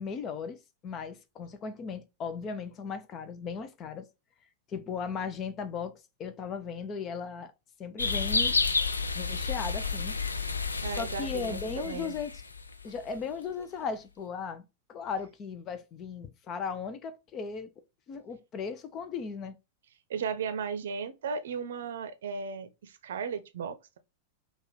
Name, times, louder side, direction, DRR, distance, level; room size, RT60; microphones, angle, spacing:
voice 1, 0.0-4.1 4.7-7.5 7.8-8.6 9.1-10.1 10.9-12.4 12.8-14.6 14.9-17.7 18.1-19.6, left 5 dB, 30° left, 0.7 m, -37 dB
sound 1, 8.0-13.0, left 4 dB, 80° left, 0.4 m, -30 dB
voice 2, 10.8-12.1 20.1-24.0, right 6 dB, 60° right, 0.6 m, -35 dB
5.3 x 2.4 x 4.1 m
figure-of-eight pair, 90°, 0 cm